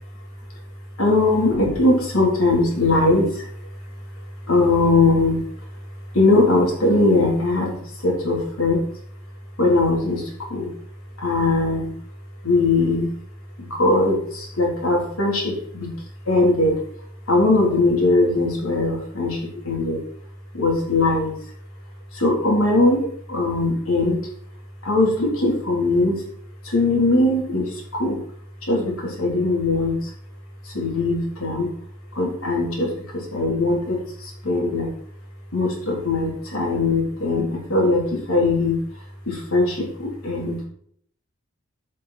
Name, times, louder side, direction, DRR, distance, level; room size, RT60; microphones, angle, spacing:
voice 1, 1.0-3.5 4.5-5.5 6.1-8.8 9.6-10.7 11.2-11.9 12.4-13.1 13.6-15.9 16.2-16.8 17.3-20.0 20.5-21.4 22.1-24.3 24.8-26.2 26.6-28.2 28.6-30.1 30.6-31.7 32.1-34.9 35.5-38.8 39.2-40.6, left 2 dB, 75° left, -1 dB, 3.5 m, -20 dB
11.0 x 5.5 x 4.3 m, 0.64 s
head